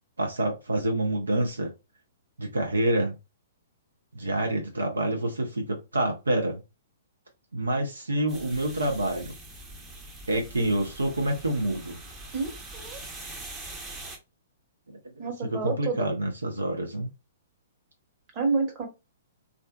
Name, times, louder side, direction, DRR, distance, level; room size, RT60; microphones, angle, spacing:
voice 1, 0.2-1.7 2.4-3.1 4.1-6.6 7.5-9.3 10.3-12.0 14.9-17.1, right 1 dB, 85° right, 0.6 m, -27 dB
sound 1, 8.3-14.2, right 2 dB, 15° right, 0.6 m, -43 dB
voice 2, 12.3-13.0 15.2-16.1 18.3-18.9, right 4 dB, 35° right, 1.0 m, -29 dB
2.4 x 2.3 x 2.2 m
hypercardioid pair, 120°, 0 cm